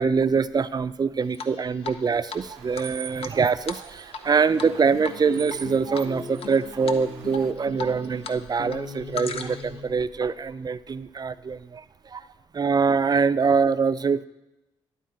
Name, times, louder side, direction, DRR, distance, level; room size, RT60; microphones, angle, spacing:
voice 1, 0.0-12.3 12.5-14.3, right 5 dB, 35° right, 14 dB, 0.5 m, -24 dB
Drip, 1.3-2.0 2.3-2.4 2.7-4.3 4.6-4.8 5.0-5.6 5.9-6.5 6.9-7.0 7.3-8.4 8.6-9.8, left 5 dB, 55° left, 0.8 m, -36 dB
sound 1, 2.4-7.5, right 10 dB, 90° right, 0.6 m, -44 dB
sound 2, 4.5-9.9, left 4 dB, 35° left, 1.7 m, -40 dB
11.0 x 4.2 x 7.7 m, 0.95 s
hypercardioid pair, 45°, 12 cm